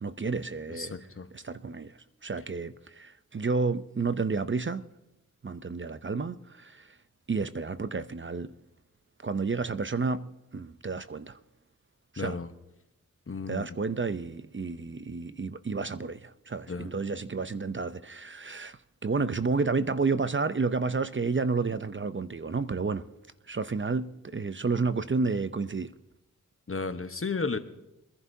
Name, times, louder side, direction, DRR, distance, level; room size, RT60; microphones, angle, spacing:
voice 1, 0.0-0.9 1.3-4.8 5.4-7.0 7.3-8.5 9.2-10.3 10.5-11.4 12.1-12.4 13.5-23.0 23.5-25.9, right 4 dB, 35° right, 0.6 m, -31 dB
voice 2, 0.7-1.3 12.2-12.5 13.3-13.7 16.7-16.9 26.7-27.6, left 4 dB, 40° left, 1.1 m, -33 dB
23.5 x 11.0 x 2.7 m
cardioid pair, 45°, 34 cm